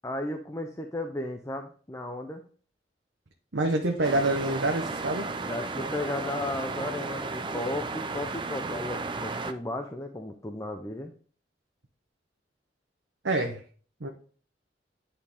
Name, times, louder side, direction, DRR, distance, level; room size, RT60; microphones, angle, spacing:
voice 1, 0.0-2.4 5.4-11.1, left 1 dB, 15° left, 4 dB, 0.6 m, -34 dB
voice 2, 3.5-5.3 13.2-13.6 14.0-14.1, right 2 dB, 80° right, 1 dB, 1.0 m, -26 dB
sound 1, 3.9-9.5, left 1 dB, 65° left, 2.9 m, -49 dB
sound 2, 4.0-9.5, right 3 dB, 25° right, 0.5 m, -34 dB
9.9 x 4.5 x 3.4 m, 0.43 s
head